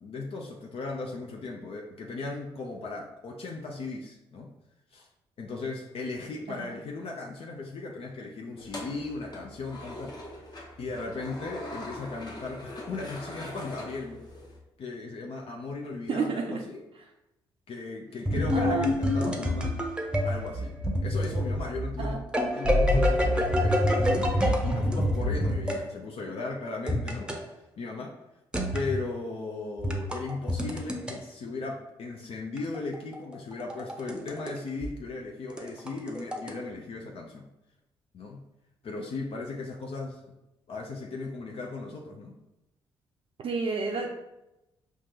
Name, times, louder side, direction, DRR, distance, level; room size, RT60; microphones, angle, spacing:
voice 1, 0.0-4.5 4.9-5.1 5.4-10.2 10.8-14.2 14.8-16.8 17.7-19.8 20.2-20.7 21.0-27.3 27.8-28.2 28.7-37.5 38.1-38.4 38.8-40.3 40.7-42.4, left 3 dB, 55° left, 0 dB, 0.5 m, -37 dB
sound 1, 8.6-14.6, left 1 dB, 35° left, 1.0 m, -42 dB
voice 2, 16.1-16.6 16.9-17.1 18.5-18.9 22.0-22.2 43.4-44.1, right 4 dB, 45° right, 0 dB, 0.5 m, -30 dB
sound 2, 18.3-25.8 26.9-27.4 28.5-29.0 29.8-31.1 32.6-34.5 34.8-34.9 35.5-36.5, left 1 dB, 10° right, 0.7 m, -27 dB
4.4 x 2.4 x 2.8 m, 0.92 s
hypercardioid pair, 45°, 12 cm